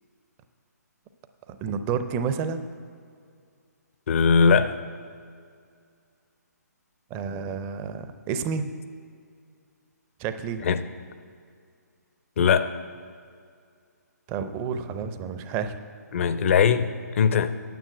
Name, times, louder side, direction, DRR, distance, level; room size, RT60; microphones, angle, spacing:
voice 1, 1.5-2.6 7.1-8.7 10.2-10.7 14.3-15.8, right 6 dB, 20° right, 0.5 m, -30 dB
voice 2, 4.1-4.8 10.6-10.8 12.4-12.7 16.1-17.5, left 6 dB, 45° left, 0.6 m, -20 dB
9.4 x 7.1 x 8.8 m
figure-of-eight pair, 135°, 9 cm